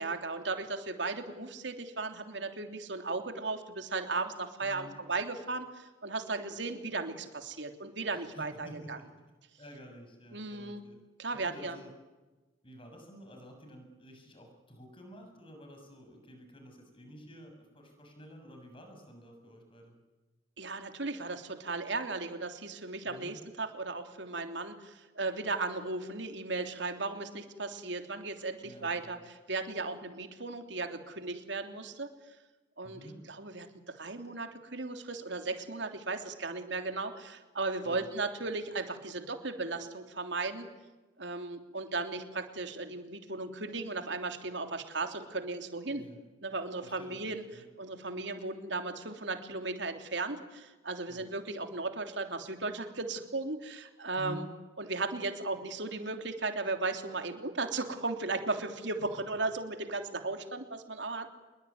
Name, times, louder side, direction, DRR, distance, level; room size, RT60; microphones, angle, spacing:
voice 1, 0.0-9.0 10.3-10.8 11.2-11.8 20.6-32.1 32.8-33.0 33.3-33.7 34.0-40.7 41.2-46.0 46.4-47.4 47.8-54.5 54.8-61.3, right 3 dB, 70° right, 6 dB, 3.3 m, -36 dB
voice 2, 4.6-5.0 8.1-9.1 9.6-11.0 11.3-11.9 12.6-19.9 23.0-23.3 28.6-29.2 32.8-33.2 37.8-38.0 45.9-46.2 46.8-47.7 51.1-51.3 54.1-54.5, equal, 30° left, 4 dB, 7.0 m, -50 dB
26.5 x 22.0 x 9.6 m, 1.2 s
head